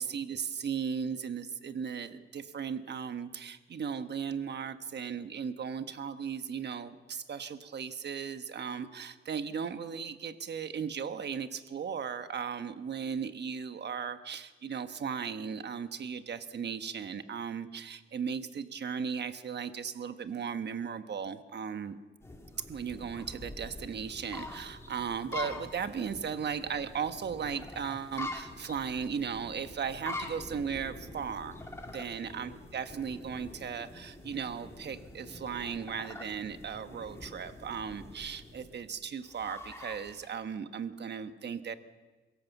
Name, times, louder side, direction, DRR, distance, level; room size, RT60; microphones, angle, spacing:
voice 1, 0.0-22.0 22.7-41.7, right 7 dB, 55° right, 9 dB, 1.2 m, -37 dB
sound 1, 22.2-40.3, left 1 dB, 15° left, 2.6 m, -45 dB
23.5 x 17.0 x 7.3 m, 1.3 s
wide cardioid pair, 135°, 21 cm